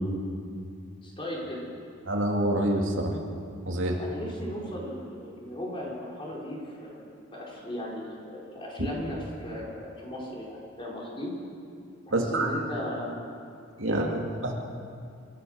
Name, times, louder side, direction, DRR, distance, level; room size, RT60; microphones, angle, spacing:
voice 1, 1.0-1.7 4.0-11.3 12.1-13.3 13.8-14.0, equal, 25° left, -4 dB, 4.5 m, -37 dB
voice 2, 2.1-3.1 3.7-4.0 12.1-12.5 13.8-14.5, right 1 dB, 75° right, 0 dB, 2.5 m, -26 dB
27.5 x 15.0 x 6.5 m, 2.4 s
head